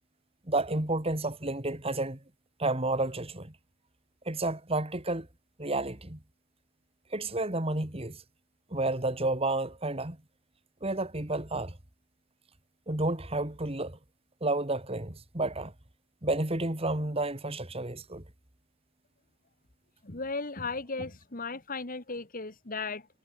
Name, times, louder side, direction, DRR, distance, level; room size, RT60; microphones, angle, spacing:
voice 1, 0.5-2.2 2.6-3.5 4.3-5.3 5.6-6.2 7.1-8.2 8.7-10.2 10.8-11.8 12.9-14.0 14.4-15.7 16.2-18.2, right 2 dB, 25° right, 2.2 m, -31 dB
voice 2, 20.0-23.1, left 3 dB, 40° left, 1.7 m, -36 dB
head